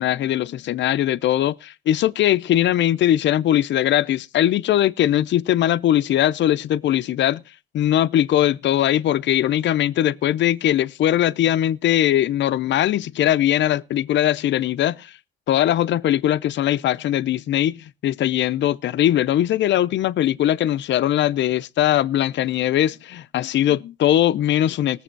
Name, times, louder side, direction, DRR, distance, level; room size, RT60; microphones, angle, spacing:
voice 1, 0.0-7.4 7.7-15.2 15.5-25.0, left 12 dB, 65° left, 0.6 m, -20 dB
18.5 x 7.1 x 4.5 m
cardioid pair, 90°, 20 cm